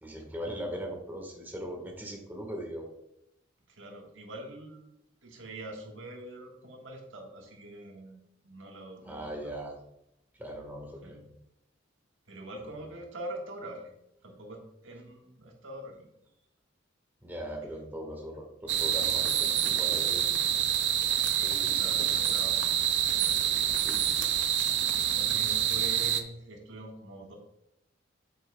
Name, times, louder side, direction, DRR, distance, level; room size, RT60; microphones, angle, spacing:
voice 1, 0.0-2.9 9.0-9.7 10.4-11.2 17.2-20.2 21.4-22.4 23.8-24.1 25.2-25.3, equal, 10° right, 1 dB, 1.4 m, -40 dB
voice 2, 3.7-4.9 5.2-9.5 11.0-11.2 12.3-13.9 14.2-16.1 21.7-22.7 23.2-24.1 24.9-27.3, right 1 dB, 85° right, 1 dB, 1.5 m, -44 dB
sound 1, 18.7-26.2, right 10 dB, 65° right, 0.6 m, -27 dB
8.9 x 7.7 x 2.3 m, 0.82 s
head